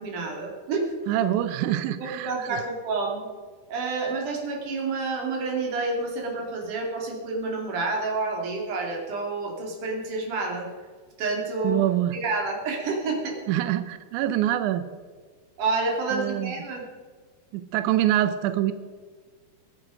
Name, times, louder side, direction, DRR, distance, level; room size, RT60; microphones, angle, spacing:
voice 1, 0.0-0.9 2.0-3.2 3.7-10.7 11.2-11.8 12.1-13.4 15.6-16.8, right 3 dB, 60° right, 0 dB, 4.0 m, -29 dB
voice 2, 1.1-2.6 11.6-12.2 13.5-14.9 16.1-16.5 17.5-18.7, right 12 dB, 80° right, 11 dB, 1.8 m, -25 dB
22.0 x 9.0 x 5.0 m, 1.5 s
omnidirectional pair, 4.3 m